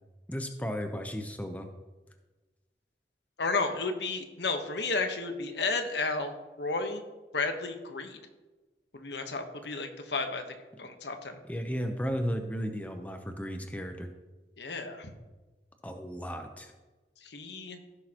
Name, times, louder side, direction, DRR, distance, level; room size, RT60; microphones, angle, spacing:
voice 1, 0.3-1.7 11.4-14.1 15.8-16.7, equal, 10° left, 5 dB, 0.6 m, -34 dB
voice 2, 3.4-7.0 7.3-8.2 8.9-10.4 10.8-11.4 14.6-15.1 17.2-17.8, left 3 dB, 80° left, 6 dB, 1.1 m, -32 dB
16.0 x 6.4 x 2.9 m, 1.2 s
head